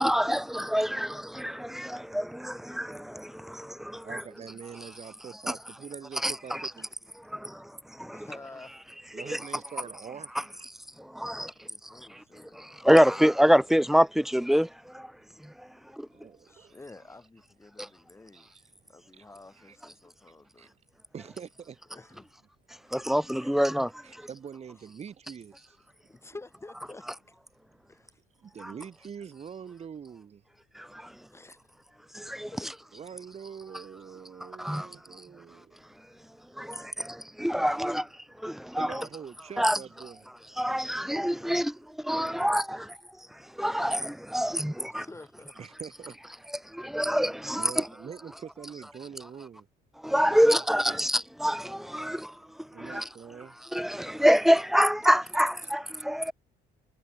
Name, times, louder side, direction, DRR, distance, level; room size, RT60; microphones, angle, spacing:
voice 1, 0.0-4.2 5.5-5.6 6.2-6.6 7.3-8.3 9.1-9.4 11.0-16.1 17.8-17.9 22.9-24.3 28.6-28.7 30.7-31.2 32.1-32.5 34.6-35.2 36.6-39.0 39.6-39.8 40.6-45.1 46.6-47.9 50.0-53.1 53.7-56.3, equal, ahead, 0.7 m, -27 dB
voice 2, 4.0-6.9 9.1-10.7 11.5-11.7 16.1-16.8 18.3-18.6 19.1-19.2 19.6-19.8 20.6-20.7 21.1-21.8 24.0-25.8 28.4-30.4 32.9-35.8 38.8-40.3 41.4-41.6 45.6-46.3 47.5-49.7 50.3-51.0 52.7-53.5, right 7 dB, 40° right, 2.9 m, -44 dB
voice 3, 8.1-8.7 11.3-13.2 15.8-15.9 16.5-18.5 18.9-20.7 21.9-22.3 26.1-27.4 27.9-28.2 31.3-31.6 32.5-32.8 36.7-36.9 44.8-45.6, left 2 dB, 15° left, 6.8 m, -49 dB
cardioid pair, 110°, 17 cm